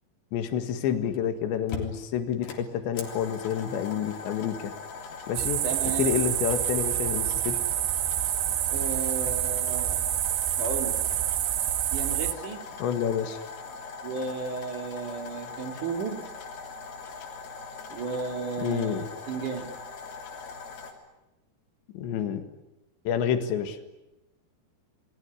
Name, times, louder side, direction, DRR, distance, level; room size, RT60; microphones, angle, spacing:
voice 1, 0.3-4.7 5.3-5.7 6.0-7.6 12.8-13.4 18.6-19.1 21.9-22.4 23.1-23.8, left 8 dB, 90° left, 9 dB, 4.1 m, -28 dB
sound 1, 1.1-1.2 1.7-20.9, left 4 dB, 65° left, 5.3 m, -41 dB
sound 2, 5.3-12.3, right 12 dB, 70° right, 3.0 m, -27 dB
voice 2, 5.6-6.2 8.7-10.0 10.6-11.0 11.9-12.6 14.0-16.2 17.9-19.7, right 4 dB, 50° right, 5 dB, 4.4 m, -33 dB
28.5 x 21.0 x 9.9 m, 0.99 s
omnidirectional pair, 5.0 m